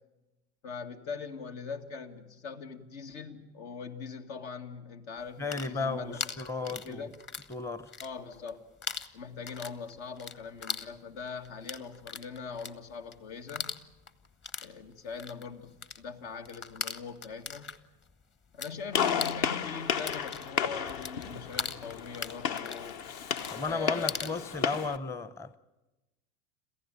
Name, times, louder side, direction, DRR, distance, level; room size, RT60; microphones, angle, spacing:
voice 1, 0.6-6.3 6.6-7.1 8.0-8.6 9.1-13.8 14.6-17.7 18.5-23.1 23.7-24.7, left 5 dB, 75° left, 2.1 m, -42 dB
sound 1, 5.3-7.5 7.8-8.5 8.8-18.7 19.0-24.4, left 5 dB, 25° left, 1.1 m, -40 dB
voice 2, 5.4-7.1 7.5-7.9 23.5-25.6, left 4 dB, 5° left, 0.7 m, -34 dB
Gunshot gunfire, 18.9-25.0, left 7 dB, 55° left, 1.2 m, -33 dB
27.5 x 15.0 x 9.1 m
hypercardioid pair, 90°, 42 cm